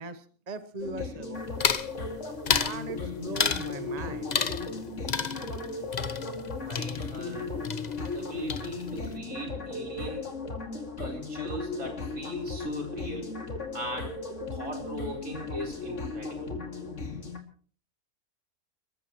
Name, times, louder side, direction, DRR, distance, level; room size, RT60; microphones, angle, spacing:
voice 1, 0.0-1.4 2.6-4.4, right 3 dB, 30° right, 11 dB, 1.0 m, -39 dB
sound 1, 0.8-17.4, left 3 dB, 55° left, 2.8 m, -36 dB
sound 2, 1.6-1.9 2.5-2.8 3.4-3.7 4.3-4.8 5.1-7.4 7.6-8.2 8.5-9.0, left 6 dB, 40° left, 0.7 m, -30 dB
voice 2, 6.6-7.6 8.1-10.3 11.0-13.4 13.7-14.2 14.5-16.5, right 1 dB, 70° right, 1 dB, 4.6 m, -39 dB
29.5 x 14.5 x 3.1 m, 0.43 s
omnidirectional pair, 1.5 m